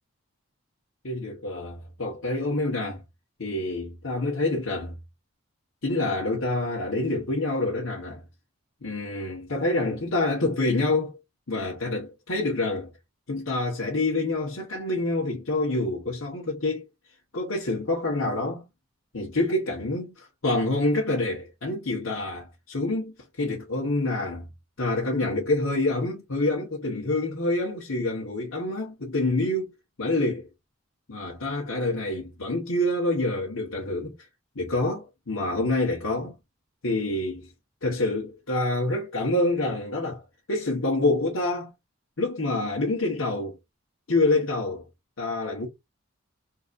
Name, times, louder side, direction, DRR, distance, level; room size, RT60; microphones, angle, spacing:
voice 1, 1.0-3.0 3.4-4.9 5.8-8.2 8.8-11.2 11.5-12.9 13.3-16.8 17.3-18.6 19.1-24.5 24.8-29.7 30.0-30.5 31.1-34.1 34.5-36.3 36.8-37.5 37.8-40.2 40.5-41.7 42.2-43.6 44.1-44.8 45.2-45.7, left 2 dB, 85° left, 1.2 m, -27 dB
3.9 x 2.8 x 2.5 m
head